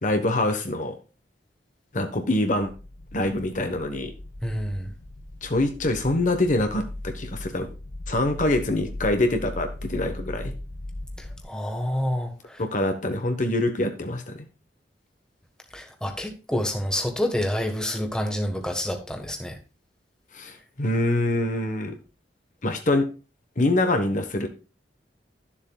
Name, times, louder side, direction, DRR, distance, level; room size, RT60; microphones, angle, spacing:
voice 1, 0.0-1.0 1.9-2.7 3.1-4.1 5.4-7.7 8.1-10.5 12.6-14.3 20.3-21.9 22.6-23.1 23.6-24.5, left 1 dB, 45° left, 6 dB, 1.2 m, -25 dB
sound 1, 2.6-11.4, left 1 dB, 75° left, 1.0 m, -38 dB
voice 2, 4.4-4.9 11.2-12.6 15.7-19.6, left 1 dB, 5° left, 4 dB, 1.4 m, -28 dB
12.5 x 7.3 x 2.3 m, 0.33 s
head